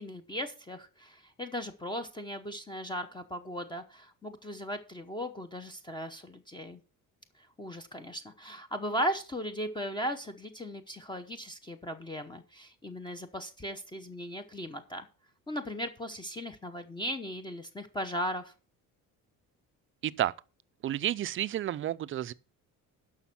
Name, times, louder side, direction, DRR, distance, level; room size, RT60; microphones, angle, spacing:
voice 1, 0.0-6.8 7.6-15.1 15.5-18.5, equal, 15° left, 0.8 m, -37 dB
voice 2, 20.0-20.3 20.8-22.3, right 12 dB, 40° right, 0.4 m, -31 dB
11.0 x 6.3 x 5.8 m
cardioid pair, 155°, 34 cm